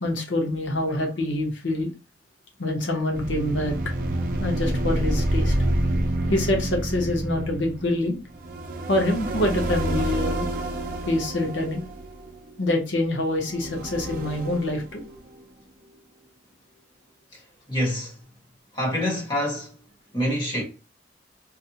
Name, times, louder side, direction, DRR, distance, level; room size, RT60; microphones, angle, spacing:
voice 1, 0.0-1.9 2.6-3.7 4.4-5.5 6.3-8.2 8.9-10.5 11.1-11.8 12.6-15.0, left 1 dB, 85° left, 0.9 m, -25 dB
sound 1, 3.1-12.7 13.4-15.4, right 1 dB, 50° right, 0.5 m, -28 dB
voice 2, 17.7-18.2 18.7-19.8 20.1-20.6, equal, 25° left, 1.1 m, -26 dB
4.1 x 2.0 x 2.8 m
head